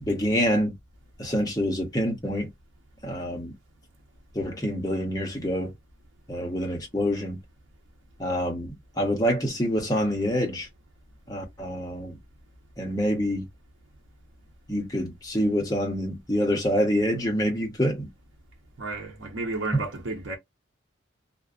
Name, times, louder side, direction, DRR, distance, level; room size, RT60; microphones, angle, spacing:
voice 1, 0.0-0.7 1.2-2.5 3.0-3.5 4.3-5.7 6.3-7.4 8.2-10.7 11.3-12.2 12.8-13.4 14.7-18.1 19.7-19.8, equal, 20° left, 0.7 m, -26 dB
voice 2, 18.8-20.4, right 2 dB, 75° right, 0.7 m, -32 dB
2.5 x 2.1 x 2.4 m
head